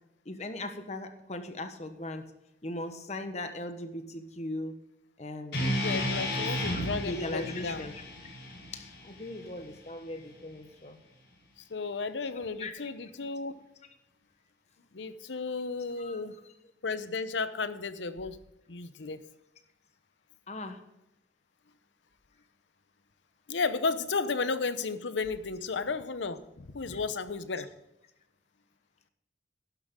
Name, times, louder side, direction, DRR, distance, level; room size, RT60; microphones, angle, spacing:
voice 1, 0.2-2.3 2.6-4.8 5.2-5.8 6.7-8.0 8.7-11.0 12.6-12.9 16.0-16.2 20.5-20.8 26.9-27.0 27.5-27.6, left 1 dB, 40° left, 8 dB, 1.1 m, -39 dB
sound 1, 5.5-9.7, left 1 dB, 65° left, 5.1 m, -33 dB
voice 2, 5.6-7.8 11.7-13.6 14.9-16.3 16.8-18.4 18.7-19.2 23.5-27.7, left 4 dB, 85° left, 12 dB, 0.8 m, -33 dB
12.0 x 11.0 x 3.7 m, 0.90 s
head